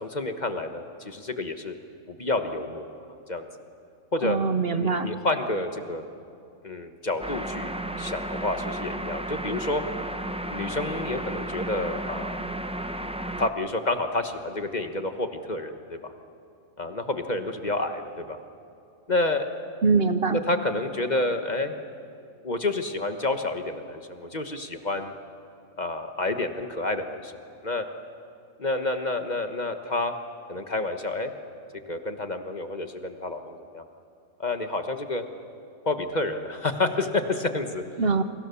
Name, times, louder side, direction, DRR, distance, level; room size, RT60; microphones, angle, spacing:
voice 1, 0.0-1.7 2.1-2.9 3.3-3.5 4.1-4.4 4.7-6.0 6.6-7.7 8.0-9.8 10.5-12.4 13.4-16.1 16.8-18.4 19.1-19.5 20.3-21.7 22.4-25.1 25.7-27.3 27.6-27.8 28.6-30.1 30.5-31.3 31.9-33.8 34.4-35.2 35.8-37.8, left 2 dB, 35° left, 7 dB, 1.3 m, -29 dB
voice 2, 4.2-5.1 19.8-20.4 38.0-38.2, right 4 dB, 50° right, 10 dB, 1.0 m, -23 dB
sound 1, 7.2-13.5, right 1 dB, 5° right, 0.5 m, -33 dB
29.0 x 24.0 x 7.0 m, 2.5 s
omnidirectional pair, 1.4 m